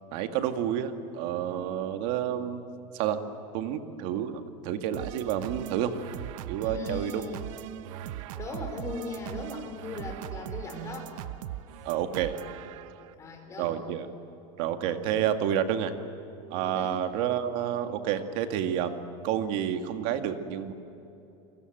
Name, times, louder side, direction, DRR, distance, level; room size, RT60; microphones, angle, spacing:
voice 1, 0.1-2.6 2.9-3.2 3.5-5.9 6.5-7.2 11.8-12.3 13.6-14.1 14.6-15.9 16.5-19.0 19.2-20.7, right 10 dB, 50° right, 7 dB, 2.1 m, -29 dB
sound 1, 4.9-13.1, right 13 dB, 70° right, 1.1 m, -40 dB
voice 2, 6.6-7.4 8.3-11.1 13.2-13.8 16.7-17.0, left 3 dB, 15° left, 2 dB, 4.9 m, -38 dB
30.0 x 24.0 x 8.0 m, 3.0 s
supercardioid pair, 170°, 17 cm